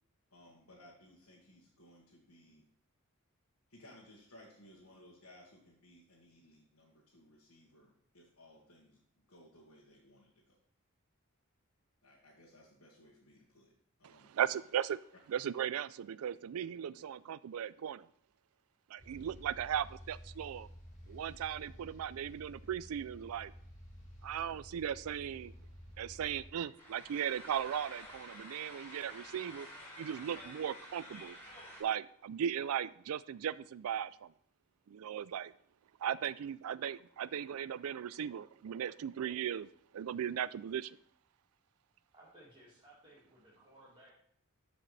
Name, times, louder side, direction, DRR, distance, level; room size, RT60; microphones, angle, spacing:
voice 1, 0.3-2.6 3.7-9.0 9.3-10.6 12.0-13.7 14.0-14.3, left 1 dB, 80° left, -4 dB, 1.8 m, -60 dB
voice 2, 14.0-15.0 15.3-18.1 18.9-20.7 21.1-23.5 24.2-25.5 26.0-29.7 30.0-31.4 31.8-34.1 34.9-35.5 36.0-39.7 39.9-40.9, right 9 dB, 80° right, 19 dB, 0.3 m, -37 dB
sound 1, 19.0-26.5, equal, 35° left, 2.5 m, -53 dB
sound 2, 26.8-31.8, equal, 10° left, 3.0 m, -50 dB
voice 3, 42.1-44.1, right 1 dB, 25° right, -8 dB, 1.9 m, -59 dB
13.0 x 5.1 x 3.3 m, 0.64 s
head